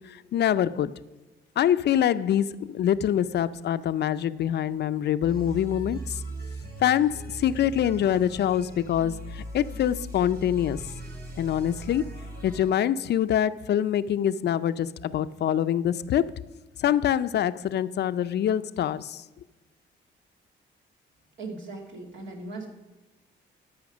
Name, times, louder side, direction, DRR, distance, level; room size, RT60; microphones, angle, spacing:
voice 1, 0.1-0.9 1.6-6.2 6.8-10.8 11.4-12.0 12.4-16.3 16.8-19.2, left 10 dB, 60° left, 14 dB, 0.5 m, -25 dB
sound 1, 5.2-12.8, right 1 dB, 50° right, 2.7 m, -39 dB
voice 2, 21.4-22.7, right 3 dB, 70° right, 1 dB, 2.5 m, -38 dB
13.5 x 5.7 x 6.2 m, 1.1 s
cardioid pair, 90°, 20 cm